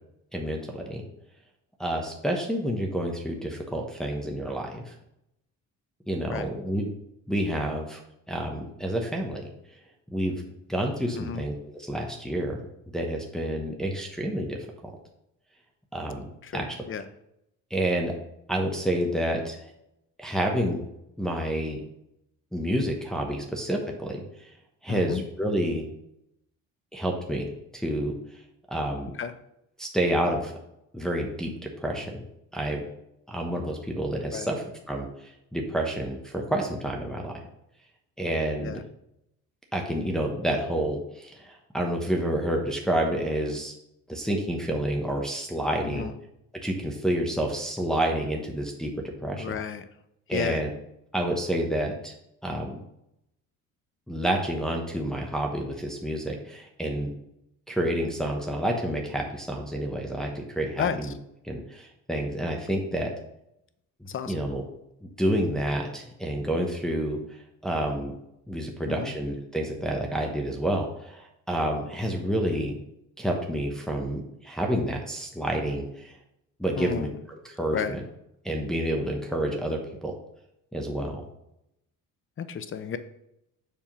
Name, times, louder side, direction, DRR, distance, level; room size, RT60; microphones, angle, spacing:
voice 1, 0.3-1.0 1.8-4.9 6.1-6.9 7.3-8.0 8.3-9.4 10.1-10.3 10.7-12.6 12.9-14.6 14.8-14.9 15.9-16.2 16.5-16.7 17.7-18.1 18.5-19.6 20.2-20.8 21.2-21.8 22.5-24.5 24.8-25.9 26.9-28.1 28.7-29.1 29.8-30.5 30.9-32.2 32.5-32.8 33.3-37.3 38.2-38.8 39.7-43.7 44.1-46.1 46.6-49.5 50.3-50.7 51.1-52.1 52.4-52.8 54.1-57.1 57.7-61.1 61.4-63.1 64.0-64.6 65.0-68.1 68.5-72.7 73.2-76.2 76.6-78.0 78.4-80.1 80.7-81.2, right 1 dB, ahead, 0 dB, 1.0 m, -29 dB
voice 2, 11.1-11.4 16.4-17.0 24.9-25.2 29.2-29.3 34.3-34.5 38.6-38.8 45.8-46.1 49.4-49.8 50.3-50.6 60.8-61.0 64.1-64.3 68.9-69.1 76.8-77.1 77.7-77.9 82.4-83.0, left 7 dB, 40° left, 11 dB, 0.7 m, -32 dB
7.3 x 3.6 x 6.0 m, 0.82 s
cardioid pair, 120°, 33 cm